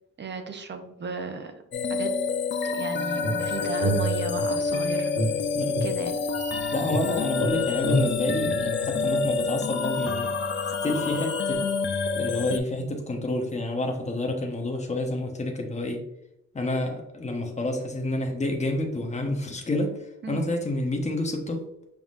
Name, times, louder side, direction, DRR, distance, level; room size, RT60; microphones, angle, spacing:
voice 1, 0.2-1.5 1.9-2.1 2.6-5.1 5.8-6.2 20.2-20.5, right 3 dB, 35° right, 6 dB, 0.7 m, -35 dB
sound 1, 1.7-12.6, left 4 dB, 40° left, 0.4 m, -28 dB
sound 2, 3.2-4.7 5.1-6.6 6.9-9.4, right 1 dB, 80° right, 1.2 m, -29 dB
Wind instrument woodwind instrument, 6.3-6.7 7.0-11.8, left 6 dB, 55° left, 0.9 m, -40 dB
voice 2, 6.7-10.3 10.8-11.7 12.1-16.0 16.5-20.0 20.3-21.7, left 1 dB, 20° left, 2 dB, 0.9 m, -29 dB
5.7 x 3.6 x 2.5 m, 0.83 s
cardioid pair, 110°, 30 cm